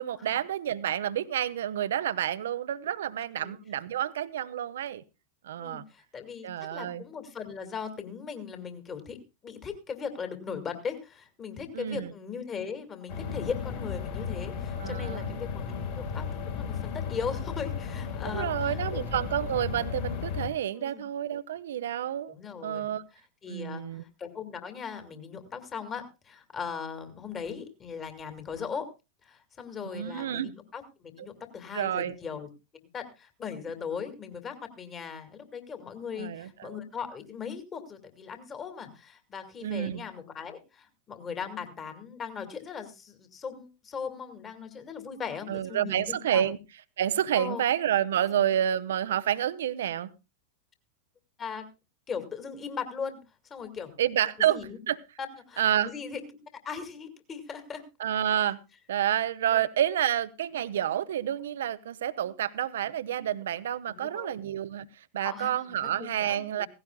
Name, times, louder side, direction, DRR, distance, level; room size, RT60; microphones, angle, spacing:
voice 1, 0.0-5.0 5.4-5.8 6.4-7.0 11.7-12.1 14.8-15.4 18.3-22.3 22.6-23.0 23.5-24.0 29.8-30.5 31.7-32.1 36.2-36.8 39.6-40.0 45.5-46.6 47.0-50.1 54.0-54.6 54.9-55.0 55.6-55.9 58.0-58.6 58.9-64.9 65.1-66.7, right 10 dB, 60° right, 15 dB, 0.6 m, -29 dB
voice 2, 5.6-9.2 9.4-19.2 20.8-21.1 22.3-22.9 23.4-28.9 29.2-32.5 32.9-46.4 47.3-47.6 51.4-51.7 52.1-53.2 53.5-53.9 54.5-54.8 55.2-56.2 56.6-57.8 59.5-59.6 63.9-64.4 65.2-66.7, left 6 dB, 25° left, 7 dB, 2.2 m, -39 dB
sound 1, 13.1-20.5, left 6 dB, 55° left, 3.8 m, -34 dB
17.0 x 16.0 x 2.3 m, 0.27 s
figure-of-eight pair, 90°, 0 cm